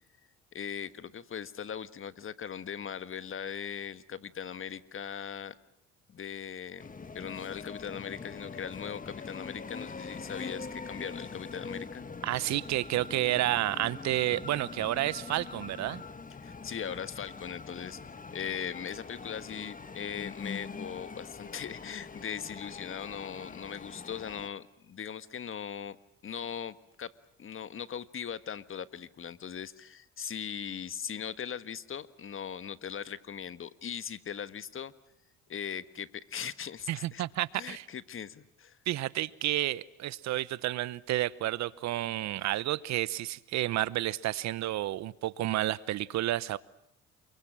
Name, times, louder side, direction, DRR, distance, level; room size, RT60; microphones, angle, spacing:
voice 1, 0.5-5.5 6.1-6.9 7.1-12.0 16.4-18.0 18.3-26.0 26.2-27.1 27.4-34.9 35.5-37.2 37.5-38.8, left 8 dB, 45° left, 14 dB, 1.5 m, -39 dB
sound 1, 6.8-24.5, left 4 dB, 30° left, 1.7 m, -43 dB
voice 2, 12.2-16.0 36.9-37.8 38.9-46.6, right 15 dB, 70° right, 19 dB, 1.0 m, -30 dB
28.5 x 22.5 x 7.6 m, 0.76 s
supercardioid pair, 70°, 29 cm